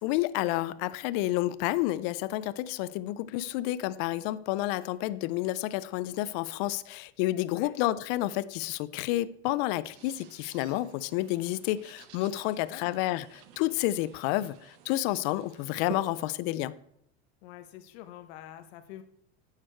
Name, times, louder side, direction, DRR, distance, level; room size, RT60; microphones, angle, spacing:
voice 1, 0.0-16.7, left 16 dB, 65° left, 0.5 m, -30 dB
sound 1, 9.9-16.3, right 9 dB, 85° right, 1.1 m, -50 dB
voice 2, 12.5-13.0 17.4-19.0, left 12 dB, 80° left, 1.0 m, -47 dB
9.3 x 6.7 x 4.4 m
supercardioid pair, 145°, 33 cm